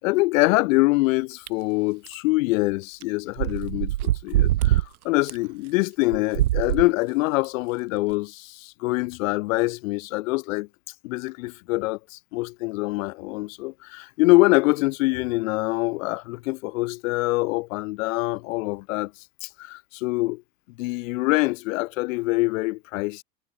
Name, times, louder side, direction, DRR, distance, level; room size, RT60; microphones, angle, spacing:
voice 1, 0.0-10.7 11.0-19.1 19.4-20.4 20.8-23.2, left 22 dB, 50° left, 3.4 m, -24 dB
sound 1, 1.5-1.6 2.1-2.2 3.0-3.1 3.4-4.9 5.3-5.4 6.1-6.9 7.4-7.5 8.1-8.2, right 14 dB, 60° right, 2.4 m, -22 dB
figure-of-eight pair, 85°, 50 cm